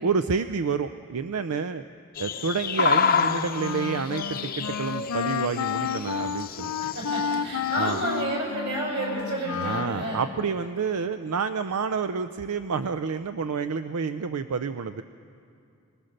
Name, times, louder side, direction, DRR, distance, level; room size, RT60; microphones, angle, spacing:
voice 1, 0.0-1.8 2.2-6.7 7.8-8.0 9.6-15.0, right 5 dB, 80° right, 10 dB, 0.5 m, -29 dB
sound 1, 2.2-8.2, left 6 dB, 40° left, 0.7 m, -29 dB
Wind instrument woodwind instrument, 3.1-10.4, left 7 dB, 85° left, 0.5 m, -32 dB
voice 2, 6.8-10.3, right 1 dB, 50° right, -1 dB, 6.1 m, -30 dB
26.5 x 19.5 x 6.5 m, 2.6 s
head